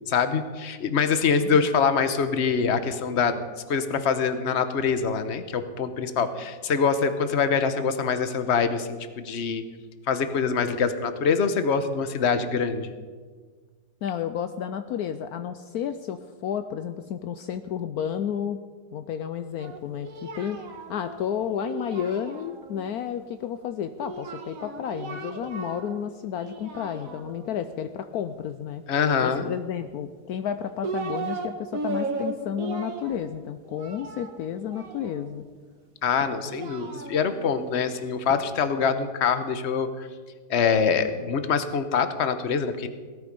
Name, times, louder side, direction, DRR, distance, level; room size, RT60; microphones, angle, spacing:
voice 1, 0.1-9.6 10.1-12.9 28.9-29.4 36.0-40.1 40.5-42.9, left 6 dB, 45° left, 10 dB, 1.2 m, -24 dB
voice 2, 14.0-18.6 18.9-20.6 20.9-28.8 29.2-35.4, left 9 dB, 70° left, 9 dB, 1.1 m, -31 dB
Singing, 19.6-22.9 24.0-26.0 26.3-27.5 28.9-29.9 30.5-31.5 31.7-35.4 36.2-38.4, right 3 dB, 55° right, 1.7 m, -36 dB
17.5 x 13.0 x 5.3 m, 1.5 s
omnidirectional pair, 1.8 m